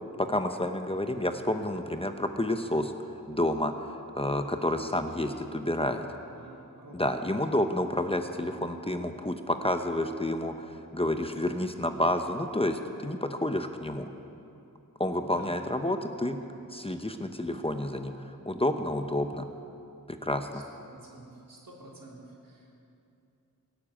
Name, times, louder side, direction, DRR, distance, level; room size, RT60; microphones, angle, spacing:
voice 1, 0.2-2.9 3.3-6.0 6.9-14.1 15.0-16.4 16.7-19.5 20.1-20.6, left 1 dB, 15° left, 6 dB, 0.9 m, -30 dB
voice 2, 6.4-7.3 15.2-15.5 20.5-20.6 20.9-22.8, right 2 dB, 80° right, -3 dB, 3.5 m, -50 dB
17.5 x 8.9 x 8.7 m, 2.7 s
wide cardioid pair, 70°, 34 cm